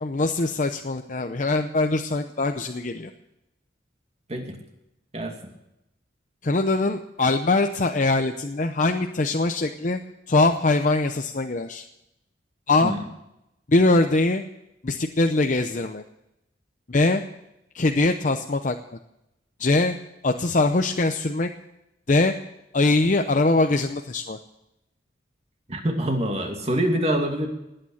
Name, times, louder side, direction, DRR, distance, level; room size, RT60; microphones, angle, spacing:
voice 1, 0.0-3.1 6.4-10.0 10.3-11.8 12.7-12.9 13.7-14.4 14.8-16.0 16.9-17.2 17.7-18.8 19.6-19.9 20.2-21.5 22.1-22.3 22.7-24.4, left 2 dB, 40° left, 6 dB, 0.7 m, -22 dB
voice 2, 25.7-27.5, right 1 dB, 35° right, 3 dB, 2.5 m, -25 dB
19.0 x 9.0 x 7.2 m, 0.87 s
head